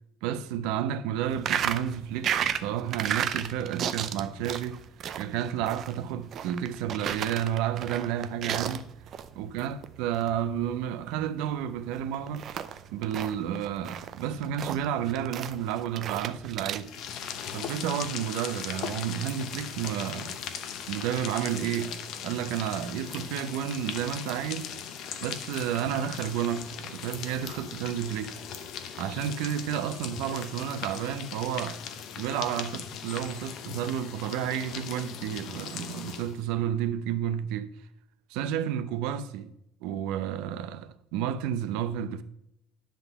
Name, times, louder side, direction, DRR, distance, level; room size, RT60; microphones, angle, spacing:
voice 1, 0.2-4.8 5.2-8.9 9.3-12.5 12.9-16.9 17.5-20.4 20.9-24.7 25.2-28.3 29.0-31.8 32.2-37.7 38.3-39.5 39.8-42.2, right 10 dB, 85° right, 0.7 m, -31 dB
sound 1, 1.3-16.8, right 9 dB, 35° right, 0.5 m, -34 dB
sound 2, 16.8-36.4, left 8 dB, 45° left, 0.7 m, -39 dB
10.0 x 3.9 x 6.8 m
cardioid pair, 180°, 0 cm